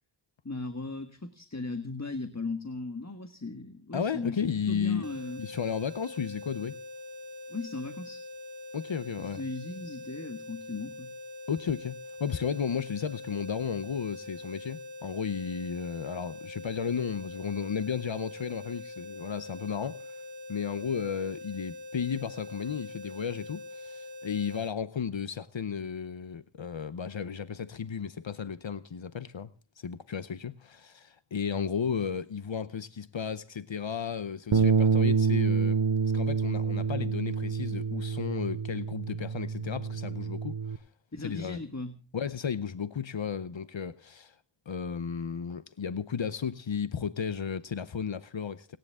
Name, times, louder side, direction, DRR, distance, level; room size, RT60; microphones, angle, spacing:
voice 1, 0.4-4.4 4.7-5.4 7.5-8.2 9.2-11.1 41.1-42.0, left 3 dB, 35° left, 1.8 m, -37 dB
voice 2, 3.9-5.1 5.4-6.8 8.7-9.4 11.5-20.2 20.5-29.5 29.8-35.8 36.1-40.8 41.2-41.6 42.1-44.4 44.7-48.8, left 7 dB, 75° left, 0.8 m, -34 dB
sound 1, 5.0-24.7, left 2 dB, 55° right, 3.1 m, -44 dB
Bass guitar, 34.5-40.8, right 5 dB, 85° right, 1.0 m, -27 dB
30.0 x 10.5 x 3.6 m
wide cardioid pair, 40°, 46 cm